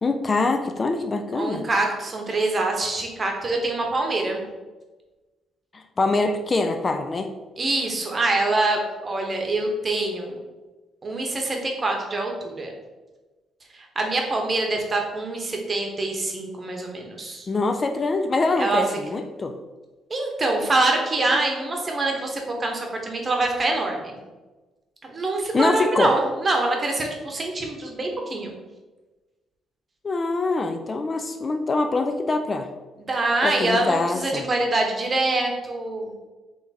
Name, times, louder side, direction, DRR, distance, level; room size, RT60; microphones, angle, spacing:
voice 1, 0.0-1.6 5.7-7.3 17.5-19.5 25.5-26.1 30.0-32.7 33.4-34.4, left 3 dB, 35° left, 6 dB, 0.3 m, -24 dB
voice 2, 1.3-4.4 7.6-10.4 11.0-12.7 13.7-17.5 18.6-18.8 20.1-24.2 25.0-28.5 33.0-36.1, right 2 dB, 35° right, 1 dB, 0.9 m, -25 dB
3.5 x 3.2 x 4.1 m, 1.2 s
cardioid pair, 90°, 0 cm